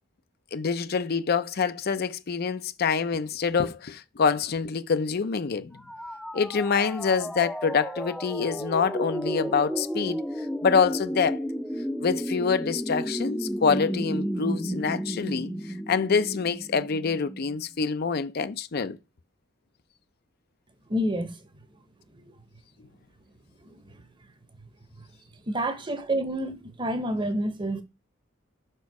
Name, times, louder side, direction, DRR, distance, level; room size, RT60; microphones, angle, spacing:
voice 1, 0.5-5.8 6.3-10.2 10.6-11.4 12.0-15.5 15.9-19.0, left 5 dB, 55° left, 0.5 m, -26 dB
sound 1, 5.8-17.6, equal, ahead, 0.5 m, -32 dB
voice 2, 20.9-21.3 22.1-22.2 23.6-24.0 25.5-27.8, right 1 dB, 25° right, 0.8 m, -29 dB
5.7 x 4.4 x 4.7 m
head